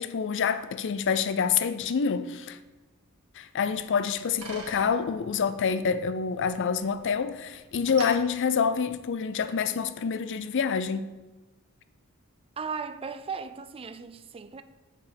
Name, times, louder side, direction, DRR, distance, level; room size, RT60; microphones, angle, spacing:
voice 1, 0.0-2.6 3.4-11.1, left 6 dB, 55° left, 0.5 m, -27 dB
Bicycle, 3.8-9.5, right 3 dB, 75° right, 1.6 m, -47 dB
voice 2, 12.6-14.6, right 5 dB, 25° right, 0.4 m, -36 dB
8.0 x 4.5 x 6.9 m
head